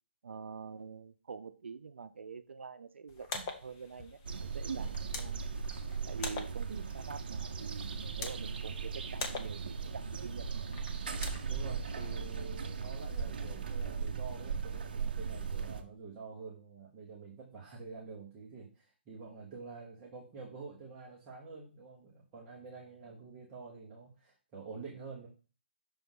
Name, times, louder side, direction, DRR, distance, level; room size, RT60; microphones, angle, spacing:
voice 1, 0.2-5.5 6.1-10.7, right 5 dB, 85° right, 10 dB, 0.6 m, -46 dB
sound 1, 3.1-12.1, left 4 dB, 20° left, 0.7 m, -46 dB
sound 2, 4.2-15.8, right 5 dB, 50° right, 0.8 m, -38 dB
voice 2, 11.4-25.3, right 4 dB, 15° right, -5 dB, 1.0 m, -48 dB
6.0 x 3.5 x 5.3 m, 0.35 s
hypercardioid pair, 170°, 6 cm